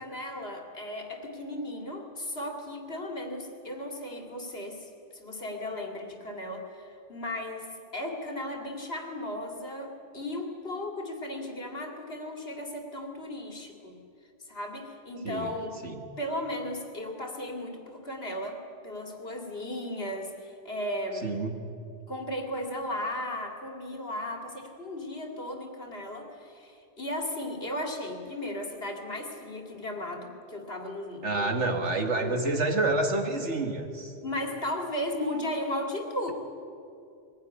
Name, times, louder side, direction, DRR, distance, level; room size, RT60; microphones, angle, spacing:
voice 1, 0.0-14.0 14.4-15.7 16.2-21.3 22.1-31.7 32.2-32.5 34.2-36.3, left 1 dB, 55° left, 2 dB, 2.7 m, -36 dB
voice 2, 21.2-21.5 31.2-34.1, right 2 dB, 75° right, 5 dB, 2.3 m, -28 dB
22.5 x 16.0 x 10.0 m, 2.6 s
omnidirectional pair, 1.2 m